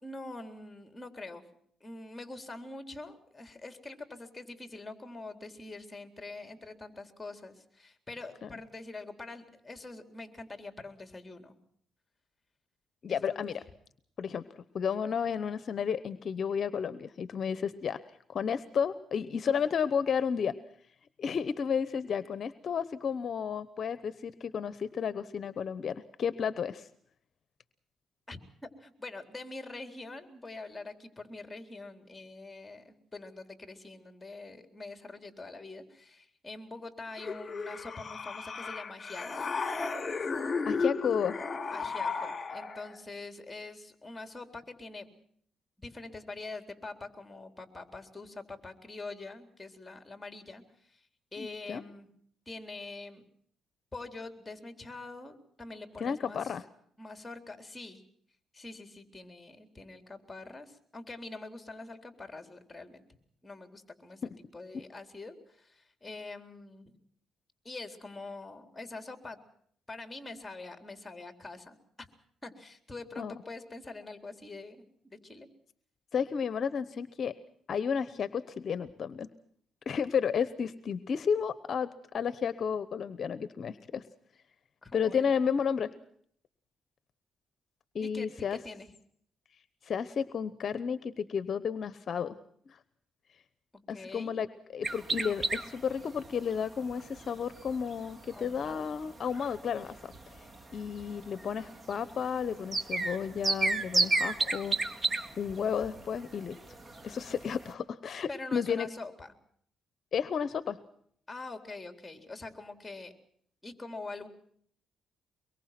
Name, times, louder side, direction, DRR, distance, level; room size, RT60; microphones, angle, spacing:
voice 1, 0.0-1.4 1.8-11.6 13.1-13.4 28.3-39.4 40.1-40.3 41.7-45.2 45.8-51.0 51.3-52.1 52.5-53.2 53.9-56.5 57.0-58.0 58.5-63.0 63.4-64.2 64.5-66.9 67.6-69.4 69.9-72.1 72.4-75.5 84.8-85.3 88.0-88.9 93.9-94.3 98.3-98.9 108.3-109.3 111.3-113.1 113.6-114.3, left 3 dB, 15° left, 7 dB, 3.9 m, -44 dB
voice 2, 13.0-13.5 14.2-14.4 14.7-18.0 18.3-20.5 21.2-26.9 40.6-41.4 51.4-51.8 56.0-56.6 73.2-73.3 76.1-77.3 77.7-79.3 79.9-84.0 84.9-85.9 87.9-88.6 89.8-92.4 92.7-92.8 93.9-94.5 94.7-100.5 100.7-104.8 105.4-106.7 107.0-108.9 110.1-110.8, left 7 dB, 55° left, 14 dB, 0.9 m, -32 dB
sound 1, 37.2-43.0, left 4 dB, 35° left, 2.9 m, -34 dB
sound 2, 94.8-107.7, right 3 dB, 30° right, 2.0 m, -34 dB
24.0 x 22.5 x 6.0 m, 0.64 s
cardioid pair, 90°, 0 cm